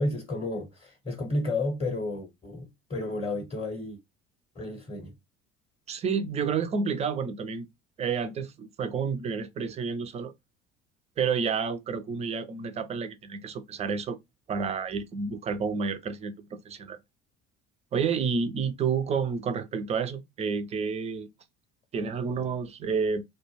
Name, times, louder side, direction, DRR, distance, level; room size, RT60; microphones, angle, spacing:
voice 1, 0.0-4.0 4.5-5.1, left 2 dB, 15° left, 0.8 m, -32 dB
voice 2, 5.9-7.7 8.0-10.3 11.2-14.2 14.5-17.0 17.9-21.3 21.9-23.2, right 5 dB, 20° right, 0.3 m, -30 dB
2.2 x 2.1 x 3.0 m
figure-of-eight pair, 65°, 42 cm